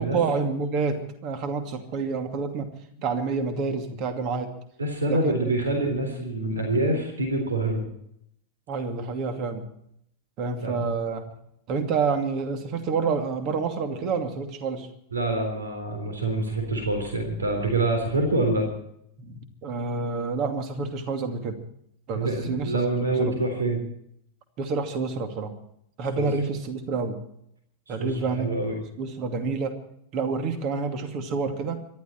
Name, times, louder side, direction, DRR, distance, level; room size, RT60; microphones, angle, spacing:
voice 1, 0.0-2.7 3.0-4.5 5.1-5.3 8.7-9.7 10.4-11.2 11.7-14.9 19.2-21.6 22.1-22.7 23.2-23.3 24.6-25.5 26.0-27.2 27.9-28.5 29.0-29.8 30.1-31.8, right 4 dB, 40° right, 6 dB, 2.5 m, -28 dB
voice 2, 4.8-7.8 10.6-10.9 15.1-18.7 22.1-23.8 26.2-26.3 27.9-28.8, right 2 dB, 70° right, 4 dB, 3.7 m, -26 dB
25.5 x 12.5 x 4.4 m, 0.73 s
figure-of-eight pair, 90°, 0 cm